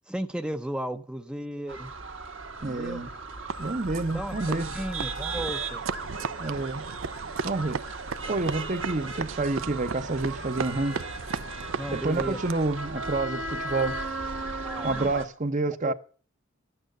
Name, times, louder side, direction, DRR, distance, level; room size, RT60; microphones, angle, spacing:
voice 1, 0.1-1.9 2.6-3.0 4.1-5.8 11.8-12.4 14.6-15.1 15.9-16.0, right 1 dB, 5° right, 0.5 m, -35 dB
sound 1, 1.7-15.2, right 3 dB, 70° right, 2.0 m, -36 dB
voice 2, 2.6-3.1 3.6-4.7 6.4-6.8 7.4-7.8 8.3-11.0 11.9-14.0 14.8-15.9, right 3 dB, 40° right, 0.8 m, -28 dB
sound 2, 3.5-12.8, right 5 dB, 90° right, 0.6 m, -37 dB
12.0 x 8.8 x 7.8 m
head